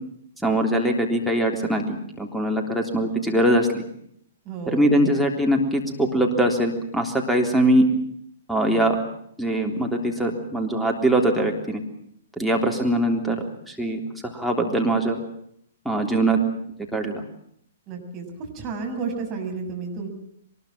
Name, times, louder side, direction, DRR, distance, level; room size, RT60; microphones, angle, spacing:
voice 1, 0.4-3.8 4.7-7.8 8.5-9.0 9.4-11.8 12.4-13.4 13.7-15.2 15.9-16.4 16.9-17.2, right 1 dB, ahead, -1 dB, 3.5 m, -22 dB
voice 2, 4.5-5.2 17.9-18.2 18.5-20.1, right 5 dB, 30° right, 3 dB, 6.9 m, -32 dB
23.5 x 21.0 x 7.5 m, 0.71 s
figure-of-eight pair, 115°, 0 cm